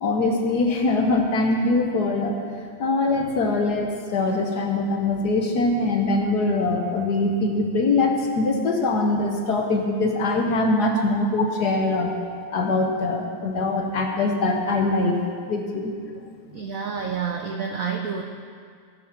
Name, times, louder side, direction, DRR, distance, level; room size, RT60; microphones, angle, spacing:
voice 1, 0.0-2.4 2.8-12.1 12.5-15.2 15.5-15.9, left 2 dB, 55° left, 2 dB, 1.4 m, -22 dB
voice 2, 16.5-18.2, right 6 dB, 70° right, 3 dB, 0.8 m, -29 dB
16.5 x 6.1 x 5.8 m, 2.1 s
omnidirectional pair, 2.3 m